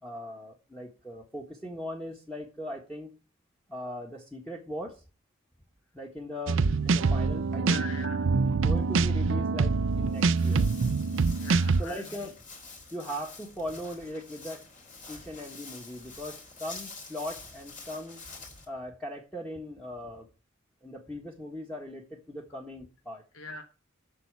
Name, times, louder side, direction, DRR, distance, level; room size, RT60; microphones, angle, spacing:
voice 1, 0.0-3.1 3.7-5.0 5.9-7.9 8.6-10.7 11.8-12.3 12.9-14.6 15.1-18.2 18.7-20.3 20.8-23.2, left 1 dB, 5° left, -1 dB, 1.5 m, -39 dB
sound 1, 6.5-11.8, right 4 dB, 65° right, 0.5 m, -25 dB
voice 2, 7.6-8.5 11.4-12.3 23.3-23.6, left 2 dB, 85° left, 5 dB, 1.3 m, -41 dB
Walk footsteps, 9.9-18.6, left 3 dB, 40° left, 3.5 m, -47 dB
8.3 x 6.3 x 8.1 m, 0.33 s
head